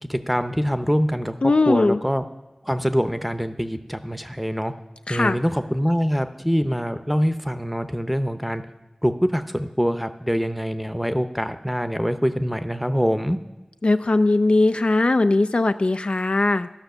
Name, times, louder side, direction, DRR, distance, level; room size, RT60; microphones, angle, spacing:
voice 1, 0.0-2.2 2.6-4.7 5.1-8.6 9.0-13.4, equal, 5° right, 9 dB, 0.7 m, -24 dB
voice 2, 1.4-2.0 5.1-5.4 13.8-16.7, left 2 dB, 60° left, 10 dB, 0.3 m, -19 dB
13.0 x 5.7 x 6.8 m, 1.1 s
wide cardioid pair, 45°, 2 cm